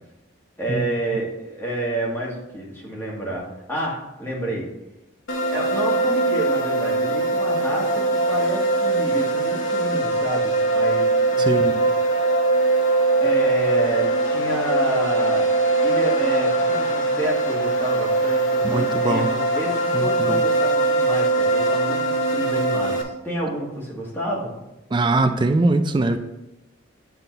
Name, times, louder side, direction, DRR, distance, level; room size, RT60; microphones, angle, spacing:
voice 1, 0.6-4.6 5.5-11.1 11.3-11.7 12.8-12.9 13.2-15.5 15.8-24.5, right 1 dB, 10° left, -5 dB, 1.9 m, -29 dB
sound 1, 5.3-23.0, right 2 dB, 85° left, 0.9 m, -21 dB
voice 2, 11.4-11.7 18.6-19.3 19.9-20.4 24.9-26.2, right 2 dB, 25° right, 8 dB, 0.4 m, -21 dB
8.9 x 3.9 x 3.9 m, 0.98 s
head